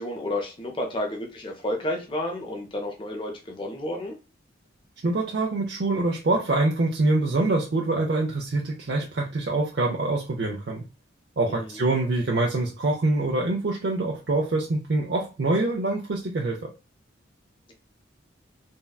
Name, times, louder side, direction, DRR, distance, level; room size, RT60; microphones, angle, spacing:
voice 1, 0.0-4.2 11.5-11.9, left 1 dB, 25° left, 2 dB, 0.5 m, -31 dB
voice 2, 5.0-10.8 11.4-16.7, right 2 dB, 55° right, -1 dB, 0.5 m, -25 dB
3.6 x 2.2 x 2.2 m, 0.31 s
head